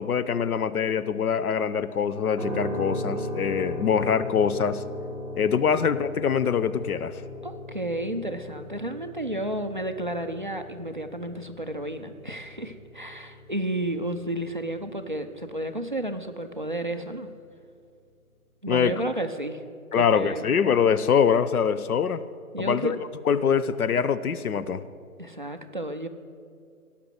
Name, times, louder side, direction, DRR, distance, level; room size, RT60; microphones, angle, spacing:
voice 1, 0.0-4.8 5.4-7.2 18.7-18.9 19.9-22.2 22.6-23.0 23.3-24.9, left 7 dB, 85° left, 14 dB, 0.8 m, -24 dB
sound 1, 2.4-16.4, left 1 dB, 15° left, 2.7 m, -37 dB
voice 2, 7.4-17.3 18.6-19.6 19.9-20.6 22.5-23.0 25.2-26.1, right 1 dB, 35° right, 6 dB, 0.5 m, -32 dB
17.5 x 5.9 x 7.8 m, 2.3 s
hypercardioid pair, 175°, 43 cm